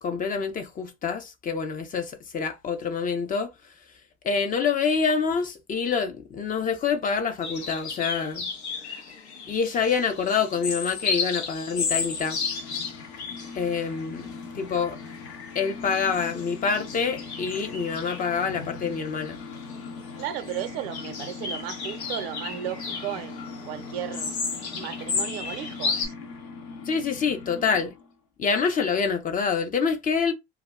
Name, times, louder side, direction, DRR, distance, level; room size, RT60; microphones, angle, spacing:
voice 1, 0.0-3.5 4.2-8.5 9.5-12.4 13.5-14.3 14.5-15.0 15.5-19.4 26.9-27.9 28.4-30.3, left 5 dB, 25° left, 0.5 m, -26 dB
sound 1, 7.4-26.1, left 5 dB, 90° left, 0.7 m, -34 dB
sound 2, 11.5-28.2, left 4 dB, 55° left, 0.8 m, -41 dB
voice 2, 20.2-24.4 24.7-26.1, right 11 dB, 65° right, 0.5 m, -35 dB
2.2 x 2.0 x 3.5 m
hypercardioid pair, 80°, 32 cm